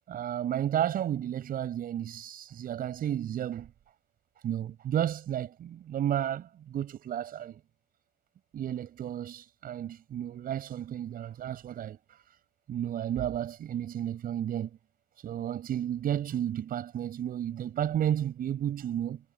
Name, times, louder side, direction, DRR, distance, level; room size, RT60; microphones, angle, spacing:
voice 1, 0.1-3.7 4.4-7.6 8.5-12.2 12.7-14.7 15.2-19.2, right 10 dB, 60° right, 7.2 m, -32 dB
cardioid pair, 110°, 17 cm